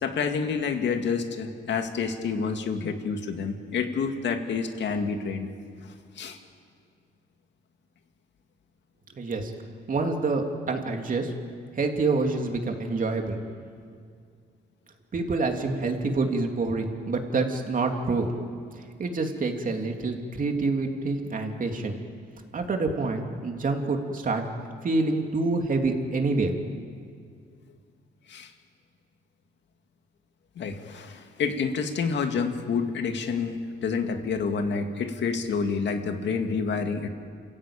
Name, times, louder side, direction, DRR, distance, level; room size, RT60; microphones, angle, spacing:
voice 1, 0.0-5.5 6.2-6.4 28.3-28.5 30.6-37.1, left 5 dB, 65° left, 6 dB, 2.2 m, -28 dB
voice 2, 9.2-9.5 9.9-11.3 11.7-13.4 15.1-18.3 18.7-21.9 22.5-24.4 24.8-26.5, right 3 dB, 45° right, 3 dB, 3.0 m, -27 dB
28.0 x 15.5 x 8.9 m, 2.2 s
cardioid pair, 90°, 20 cm